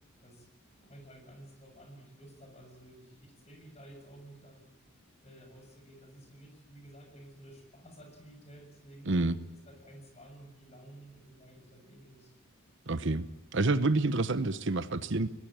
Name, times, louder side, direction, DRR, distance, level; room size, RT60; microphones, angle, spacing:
voice 1, 0.8-4.7 5.2-9.1 9.6-12.3, right 1 dB, 30° left, 4 dB, 6.7 m, -53 dB
voice 2, 12.9-13.2 13.5-15.3, right 2 dB, 55° right, 14 dB, 1.0 m, -28 dB
23.0 x 20.0 x 8.8 m, 1.0 s
head